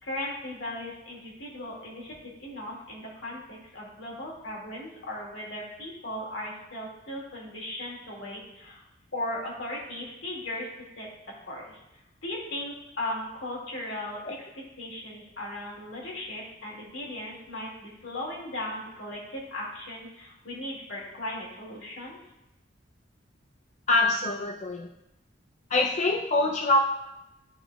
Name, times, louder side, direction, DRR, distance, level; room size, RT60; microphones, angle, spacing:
voice 1, 0.0-8.8 9.1-10.7 11.0-11.1 11.5-11.8 12.2-14.5 14.8-22.2, left 1 dB, 70° left, -3 dB, 2.1 m, -37 dB
voice 2, 23.9-24.9 25.7-26.8, left 2 dB, 35° left, 1 dB, 0.4 m, -24 dB
12.0 x 4.3 x 2.3 m, 0.91 s
head